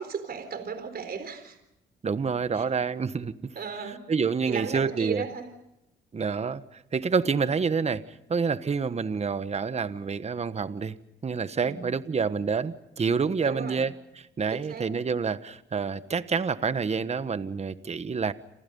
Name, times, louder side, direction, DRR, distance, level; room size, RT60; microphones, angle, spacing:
voice 1, 0.0-1.6 2.6-2.7 3.6-4.0 4.5-5.5 11.6-11.9 13.4-13.9 14.5-14.9, right 6 dB, 50° right, 10 dB, 4.1 m, -35 dB
voice 2, 2.0-3.5 4.1-5.2 6.1-8.0 8.3-10.9 11.2-13.9 14.4-18.3, right 5 dB, 35° right, 13 dB, 1.3 m, -28 dB
28.5 x 27.5 x 5.5 m, 0.84 s
cardioid pair, 90°, 20 cm